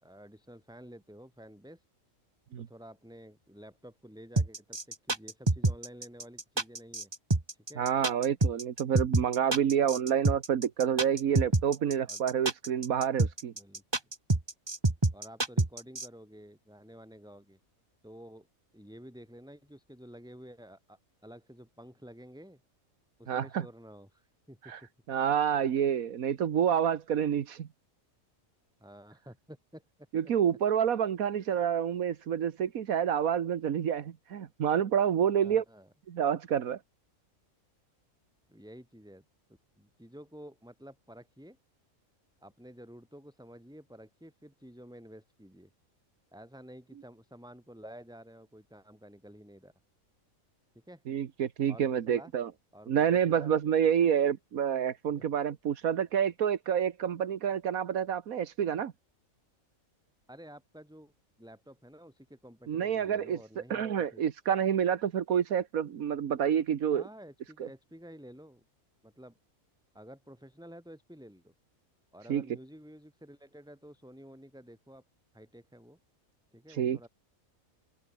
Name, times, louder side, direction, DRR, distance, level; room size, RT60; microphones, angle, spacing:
voice 1, 0.0-1.8 2.6-7.1 7.5-7.8 11.3-11.5 12.1-12.2 13.5-13.8 15.1-17.6 18.0-18.5 18.7-22.6 23.2-24.7 28.8-30.1 35.4-35.9 38.5-39.2 39.8-41.6 42.4-45.7 46.3-49.7 50.7-51.0 51.7-52.3 52.7-53.6 55.1-55.2 60.3-61.1 61.4-64.2 66.9-68.6 69.0-69.4 69.9-71.5 72.1-75.0 75.3-76.0 76.5-77.1, equal, 5° right, 5.8 m, -51 dB
sound 1, 4.4-16.1, right 2 dB, 20° right, 1.5 m, -27 dB
voice 2, 7.8-13.5 23.3-23.6 24.6-24.8 25.1-27.7 30.1-35.6 36.1-36.8 51.1-52.5 52.9-58.9 62.7-63.4 63.7-67.0 72.3-72.4 76.7-77.0, right 8 dB, 85° right, 1.6 m, -28 dB
open air
omnidirectional pair, 1.4 m